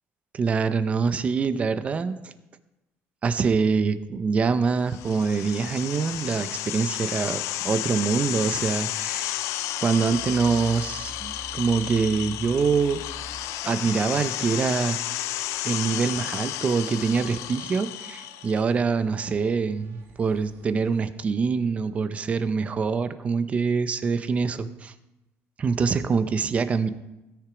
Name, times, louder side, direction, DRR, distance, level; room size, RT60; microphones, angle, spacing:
voice 1, 0.3-2.3 3.2-9.4 9.8-13.0 13.6-15.0 15.6-24.9 25.6-26.9, right 5 dB, 25° right, 12 dB, 0.6 m, -25 dB
sound 1, 4.9-18.6, left 15 dB, 70° left, 0.4 m, -32 dB
sound 2, 10.1-21.0, right 3 dB, 55° right, 1.8 m, -47 dB
16.5 x 6.8 x 5.0 m, 0.97 s
cardioid pair, 165°, 5 cm